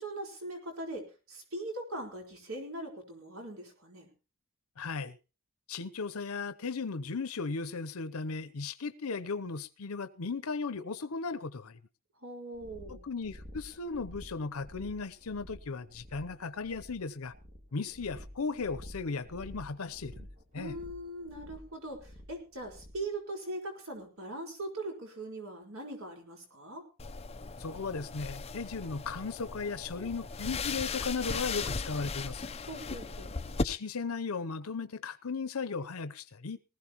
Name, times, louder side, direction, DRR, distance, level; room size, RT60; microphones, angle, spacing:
voice 1, 0.0-4.1 12.2-13.0 20.5-26.9 32.7-33.4, right 1 dB, 70° right, 4.2 m, -41 dB
voice 2, 4.8-5.2 5.7-11.8 12.9-17.3 17.7-20.3 20.5-20.7 27.6-32.5 33.6-36.6, left 4 dB, 80° left, 0.8 m, -36 dB
sound 1, 12.5-23.1, equal, 35° right, 3.4 m, -50 dB
sound 2, 27.0-33.6, left 4 dB, 30° left, 0.6 m, -37 dB
20.0 x 15.0 x 3.0 m
head